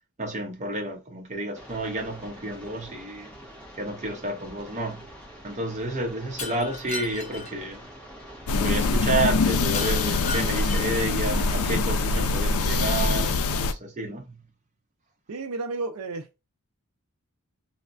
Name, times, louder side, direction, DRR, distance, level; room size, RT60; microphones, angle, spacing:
voice 1, 0.2-3.3 3.8-5.0 5.4-7.8 8.6-14.4, right 1 dB, 35° right, 0.7 m, -30 dB
sound 1, 1.5-13.1, equal, 5° left, 1.0 m, -45 dB
Shatter, 6.4-7.5 9.7-11.0, left 3 dB, 30° left, 0.6 m, -36 dB
sound 2, 8.5-13.7, left 3 dB, 80° left, 0.4 m, -24 dB
voice 2, 15.3-16.3, right 3 dB, 85° right, 0.5 m, -32 dB
3.2 x 2.1 x 2.4 m
head